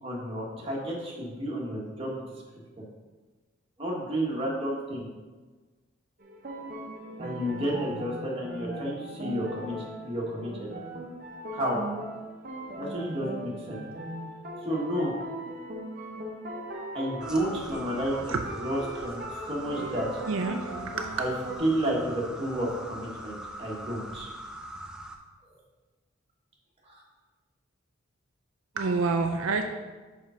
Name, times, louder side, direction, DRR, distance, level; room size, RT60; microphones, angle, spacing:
voice 1, 0.0-2.2 2.8-2.9 3.8-5.1 7.2-9.7 10.0-10.7 11.5-11.8 12.8-13.8 14.6-15.1 16.9-18.3 18.6-20.2 21.2-21.3 21.6-24.3 26.8-27.0, right 1 dB, 25° right, -3 dB, 1.4 m, -31 dB
sound 1, 6.2-21.6, right 1 dB, 40° right, 0.9 m, -39 dB
sound 2, 17.2-25.2, right 1 dB, 5° right, 0.4 m, -42 dB
voice 2, 18.1-18.4 19.8-21.2 28.8-29.6, right 4 dB, 75° right, 5 dB, 0.4 m, -29 dB
4.9 x 4.6 x 5.5 m, 1.3 s
head